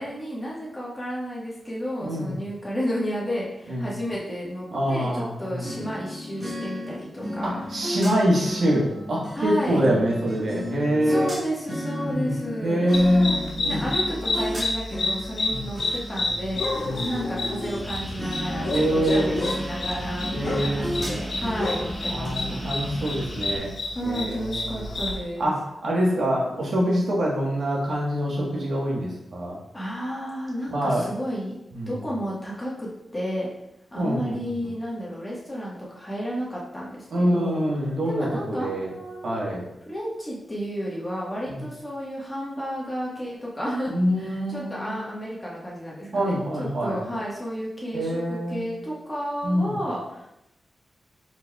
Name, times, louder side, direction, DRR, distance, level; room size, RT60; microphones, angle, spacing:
voice 1, 0.0-7.6 9.3-9.8 11.1-13.4 13.6-16.7 17.0-22.7 23.9-25.5 29.7-31.6 31.9-33.5 33.9-37.6 38.1-39.4 39.9-50.3, equal, 15° left, -5 dB, 1.3 m, -32 dB
voice 2, 2.0-2.4 3.7-3.9 4.7-5.7 7.4-11.3 12.0-12.3 12.6-13.9 15.5-15.6 16.8-17.0 18.7-19.5 20.3-21.1 22.1-23.7 24.0-24.9 25.4-29.6 30.7-31.1 31.7-32.0 34.0-34.4 37.1-38.9 39.2-39.6 41.5-41.6 43.9-45.0 46.1-47.0 47.9-48.7 49.4-49.8, equal, 70° right, -4 dB, 1.3 m, -25 dB
sound 1, 5.6-17.9 18.2-22.3, left 1 dB, 30° right, 1.5 m, -34 dB
sound 2, 12.9-25.2, left 2 dB, 65° left, 0.9 m, -30 dB
sound 3, 17.8-23.6, equal, ahead, 1.0 m, -36 dB
4.8 x 4.2 x 2.3 m, 0.84 s
wide cardioid pair, 125°, 0 cm